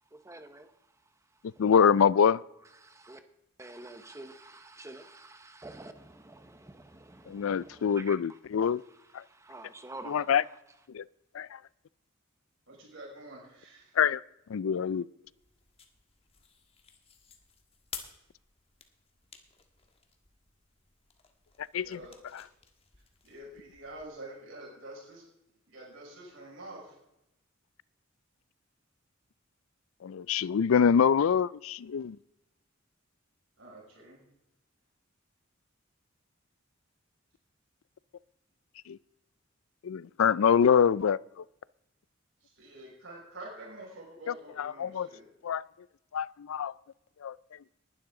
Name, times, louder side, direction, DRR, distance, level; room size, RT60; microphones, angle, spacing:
voice 1, 0.1-0.7 1.6-1.7 2.8-3.2 3.6-8.2 8.9-10.4, right 2 dB, 15° right, 0.8 m, -48 dB
voice 2, 1.6-2.4 7.3-8.8 9.1-9.2 10.1-10.4 10.9-11.0 11.3-11.6 14.0-14.2 14.5-15.1 21.7-22.0 22.3-22.4 30.0-32.2 38.9-39.0 39.8-41.4 44.3-45.1 45.4-45.6 46.1-46.7 47.2-47.4, left 7 dB, 85° left, 0.4 m, -25 dB
voice 3, 12.7-13.9 21.8-22.2 23.2-25.2 25.7-27.0 33.6-34.2 42.4-45.3, right 1 dB, 70° right, 5.8 m, -47 dB
sound 1, 15.2-24.1, left 6 dB, 30° left, 1.4 m, -52 dB
20.0 x 11.5 x 3.8 m
head